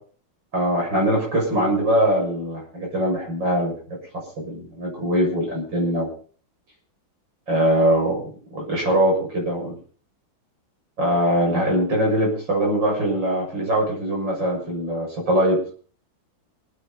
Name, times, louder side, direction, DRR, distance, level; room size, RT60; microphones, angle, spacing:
voice 1, 0.5-3.7 4.4-6.1 7.5-8.2 8.5-9.7 11.0-15.6, right 1 dB, 65° right, -1 dB, 7.6 m, -22 dB
27.5 x 9.9 x 4.2 m, 0.43 s
omnidirectional pair, 2.2 m